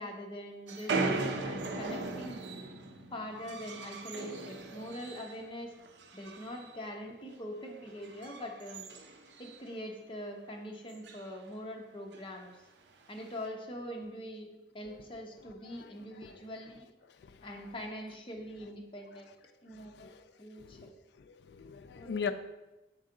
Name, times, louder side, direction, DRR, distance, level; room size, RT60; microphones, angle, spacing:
voice 1, 0.0-2.4 3.1-5.7 6.1-8.9 9.4-12.6 13.1-14.5 14.7-16.9 17.4-20.1 20.4-20.9 21.9-22.3, equal, 30° left, 1 dB, 0.9 m, -43 dB
sound 1, 0.7-5.5 5.8-6.8 7.1-7.3 7.9-9.8 10.2-10.3 10.5-10.6 10.9-11.3 12.1-12.3 13.1-13.5, right 3 dB, 80° right, 0.6 m, -38 dB
voice 2, 20.6-20.9 21.3-22.3, left 6 dB, 70° left, 8 dB, 0.3 m, -38 dB
6.3 x 4.5 x 3.8 m, 1.0 s
head